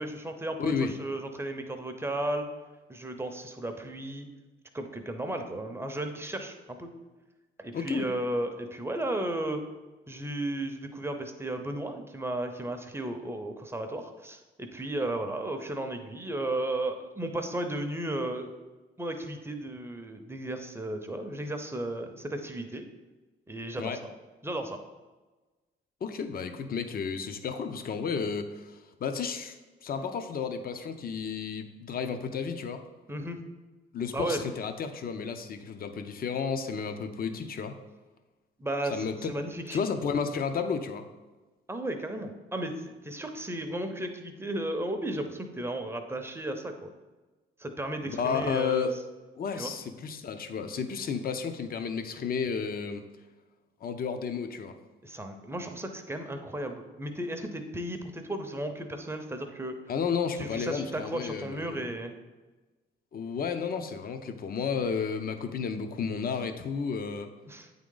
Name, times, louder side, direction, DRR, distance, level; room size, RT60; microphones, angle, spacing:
voice 1, 0.0-2.5 2.9-4.3 4.7-6.9 7.6-9.6 10.1-18.5 19.0-22.9 23.5-24.1 24.4-24.8 33.1-33.4 34.1-34.4 38.6-39.8 41.7-46.9 47.6-48.9 49.6-49.7 55.0-59.8 60.4-62.1 67.5-67.8, right 1 dB, 10° right, 5 dB, 0.7 m, -34 dB
voice 2, 0.6-1.0 7.7-8.1 23.8-24.0 26.0-29.6 29.8-32.8 33.9-37.8 38.9-39.3 39.7-41.1 48.1-48.9 49.4-53.0 53.8-54.7 59.9-61.9 63.1-67.3, left 6 dB, 50° left, 8 dB, 0.6 m, -32 dB
8.5 x 3.7 x 3.8 m, 1.2 s
cardioid pair, 90°, 20 cm